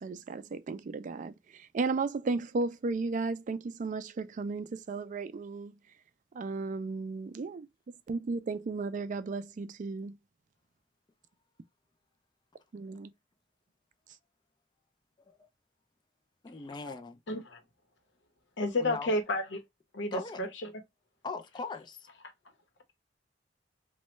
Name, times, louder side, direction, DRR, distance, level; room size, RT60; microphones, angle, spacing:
voice 1, 0.0-5.8 6.3-7.7 8.1-10.2 12.7-13.1, right 3 dB, 45° right, 0.4 m, -34 dB
voice 2, 16.4-17.2 18.8-19.1 20.1-20.5 21.2-22.1, left 4 dB, 25° left, 0.4 m, -40 dB
voice 3, 17.3-17.6 18.6-19.6 19.9-20.7, left 1 dB, 80° left, 0.9 m, -31 dB
3.1 x 2.2 x 3.0 m
head